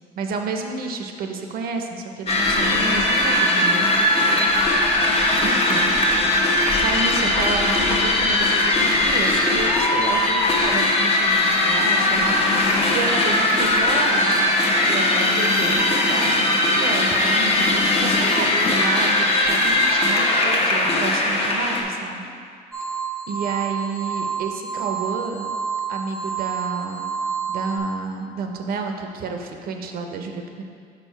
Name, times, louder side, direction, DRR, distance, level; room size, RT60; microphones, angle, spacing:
voice 1, 0.1-3.9 5.4-5.9 6.8-14.4 14.9-16.4 16.7-22.2 23.3-25.5 25.9-27.1 27.5-30.6, right 4 dB, 60° right, 4 dB, 0.6 m, -30 dB
sound 1, 2.3-21.8, left 1 dB, 35° left, 0.8 m, -19 dB
sound 2, 22.7-27.8, right 6 dB, 5° left, 0.6 m, -29 dB
5.4 x 4.5 x 4.5 m, 2.2 s
cardioid pair, 110°, 17 cm